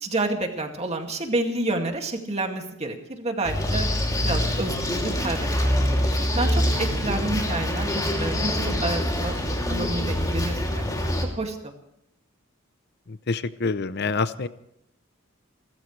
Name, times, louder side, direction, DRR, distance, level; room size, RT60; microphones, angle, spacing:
voice 1, 0.0-3.9 4.2-5.8 6.2-9.4 9.7-11.7, right 2 dB, 35° right, 3 dB, 2.2 m, -29 dB
sound 1, 3.4-11.2, left 1 dB, 20° left, 2.8 m, -25 dB
voice 2, 13.3-14.5, left 4 dB, 55° left, 14 dB, 0.6 m, -26 dB
30.0 x 14.0 x 3.3 m, 0.78 s
head